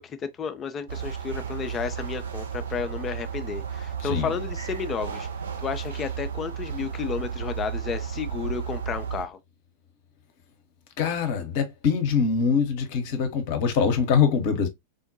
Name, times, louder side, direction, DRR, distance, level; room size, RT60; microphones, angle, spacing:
voice 1, 0.0-5.3 5.6-9.4, left 6 dB, 25° left, 0.3 m, -32 dB
sound 1, 0.9-9.3, right 7 dB, 65° right, 0.5 m, -33 dB
voice 2, 4.0-4.3 11.0-14.7, left 6 dB, 50° left, 0.7 m, -23 dB
3.6 x 2.1 x 2.5 m
figure-of-eight pair, 90°, 0 cm